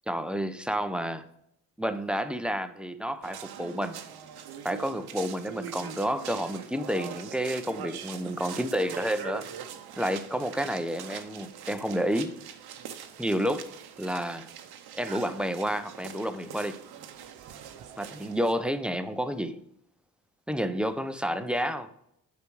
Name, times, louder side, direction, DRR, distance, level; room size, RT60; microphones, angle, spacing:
voice 1, 0.1-1.2 1.8-4.0 4.6-9.5 10.0-12.4 13.2-13.7 14.0-14.5 14.9-16.8 18.0-19.6 20.5-21.9, equal, 5° right, 0.6 m, -30 dB
sound 1, 3.2-18.5, right 8 dB, 75° right, 0.9 m, -43 dB
8.2 x 5.1 x 4.8 m
supercardioid pair, 60°, 38 cm